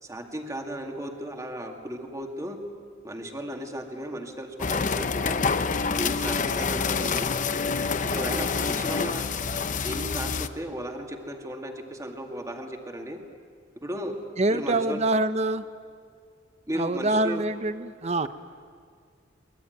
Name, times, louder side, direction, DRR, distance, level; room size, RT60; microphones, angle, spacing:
voice 1, 0.0-2.6 3.0-5.4 6.0-7.3 8.1-9.2 9.8-13.2 13.8-14.2 14.5-15.0 16.7-17.4, equal, 15° right, 3 dB, 2.1 m, -35 dB
sound 1, 4.6-10.5, left 5 dB, 45° left, 0.8 m, -27 dB
voice 2, 14.4-15.6 16.7-18.3, right 2 dB, 35° right, 13 dB, 0.7 m, -25 dB
23.5 x 20.5 x 9.3 m, 2.1 s
head